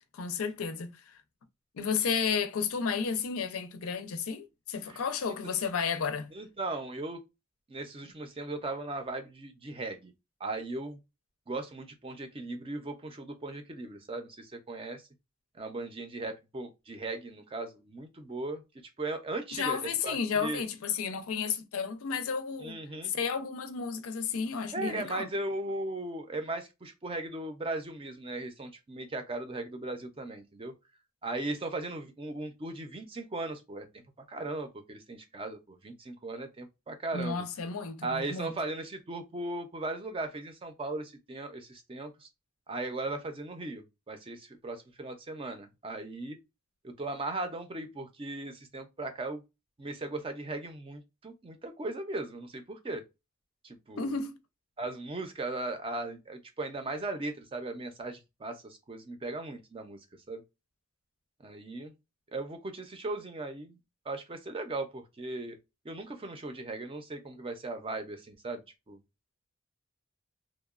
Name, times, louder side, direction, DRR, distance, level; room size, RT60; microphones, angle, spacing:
voice 1, 0.1-1.2 1.7-6.3 19.5-22.8 23.0-25.3 37.1-38.5 54.0-54.4, left 6 dB, 85° left, 0.5 m, -32 dB
voice 2, 6.3-7.2 7.7-10.1 10.4-11.0 11.5-15.0 15.5-18.6 19.0-20.6 22.6-23.1 24.7-30.7 31.2-34.0 34.3-37.4 38.0-42.3 42.7-46.4 46.8-49.4 49.8-53.0 53.6-54.1 54.8-60.0 60.3-60.4 61.4-61.9 62.3-63.8 64.1-65.6 65.8-69.0, right 2 dB, 25° right, 0.4 m, -37 dB
2.8 x 2.1 x 2.4 m
head